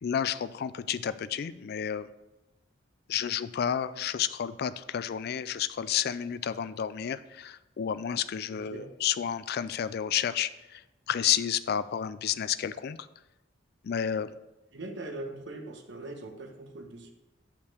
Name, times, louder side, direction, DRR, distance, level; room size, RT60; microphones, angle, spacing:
voice 1, 0.0-2.1 3.1-13.0 13.8-14.3, left 9 dB, 55° left, 14 dB, 0.3 m, -31 dB
voice 2, 8.5-8.9 14.7-17.1, right 2 dB, 65° right, 4 dB, 1.2 m, -41 dB
6.6 x 5.7 x 6.2 m, 0.98 s
head